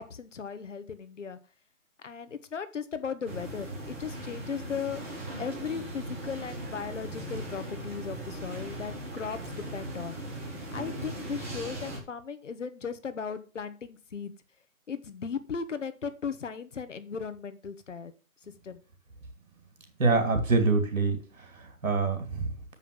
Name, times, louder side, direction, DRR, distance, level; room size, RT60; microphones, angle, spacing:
voice 1, 0.0-1.4 2.0-5.0 5.4-9.4 9.7-10.2 10.7-14.3 14.9-18.1 18.6-18.8, left 6 dB, 60° left, 11 dB, 1.4 m, -37 dB
sound 1, 3.2-12.0, right 1 dB, 10° right, 0.9 m, -39 dB
voice 2, 20.0-22.5, right 3 dB, 70° right, 6 dB, 3.2 m, -26 dB
7.4 x 5.5 x 7.1 m, 0.35 s
hypercardioid pair, 165°, 41 cm